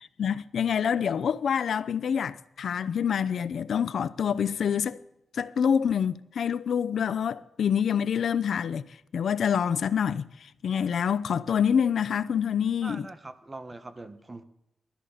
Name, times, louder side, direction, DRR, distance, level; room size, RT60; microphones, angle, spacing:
voice 1, 0.2-5.0 5.3-13.1, left 7 dB, 70° left, 0.6 m, -26 dB
voice 2, 12.8-14.4, right 2 dB, 20° right, 1.2 m, -42 dB
18.5 x 13.0 x 5.0 m
wide cardioid pair, 120°, 0 cm